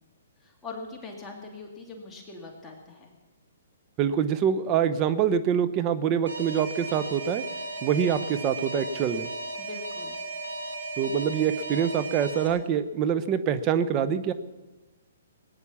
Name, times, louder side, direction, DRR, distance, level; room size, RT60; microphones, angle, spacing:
voice 1, 0.4-3.1 9.6-10.2, left 3 dB, 15° left, -1 dB, 2.4 m, -42 dB
voice 2, 4.0-7.4 7.8-9.3 11.0-14.3, right 8 dB, 30° right, 11 dB, 0.9 m, -25 dB
Alarm, 6.3-12.5, right 2 dB, 85° right, 2.6 m, -35 dB
18.5 x 9.8 x 7.3 m, 1.2 s
hypercardioid pair, 135°, 0 cm